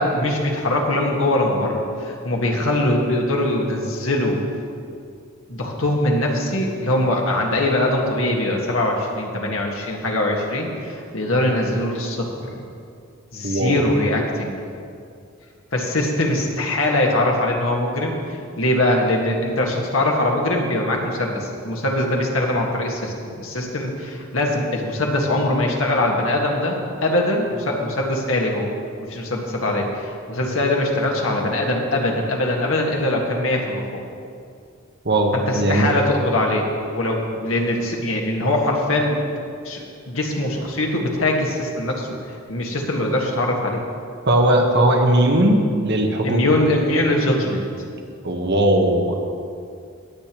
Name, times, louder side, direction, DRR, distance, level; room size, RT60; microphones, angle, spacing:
voice 1, 0.0-4.4 5.5-12.5 13.3-14.6 15.7-28.7 29.0-34.0 35.3-39.2 39.6-42.1 42.5-43.8 46.2-47.6, left 1 dB, 80° left, 0 dB, 1.7 m, -22 dB
voice 2, 13.4-13.9 35.0-35.9 44.3-46.5 48.2-49.1, right 1 dB, 55° right, 2 dB, 1.2 m, -18 dB
18.5 x 8.6 x 3.1 m, 2.4 s
head